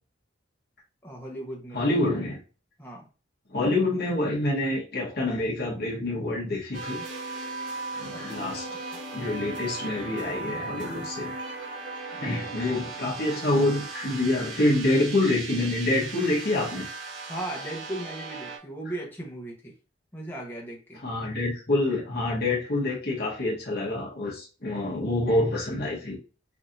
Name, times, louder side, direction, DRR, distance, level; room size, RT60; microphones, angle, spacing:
voice 1, 1.0-1.8 2.8-3.1 8.1-8.8 12.1-12.9 17.3-19.7 20.1-21.0, right 1 dB, 10° left, -2 dB, 1.0 m, -38 dB
voice 2, 1.7-2.4 3.5-7.0 7.9-8.7 9.1-11.4 12.2-16.9 21.0-26.2, left 2 dB, 55° left, -1 dB, 1.2 m, -26 dB
sound 1, 6.7-18.6, right 3 dB, 85° right, 1.3 m, -37 dB
5.9 x 2.8 x 2.6 m, 0.35 s
head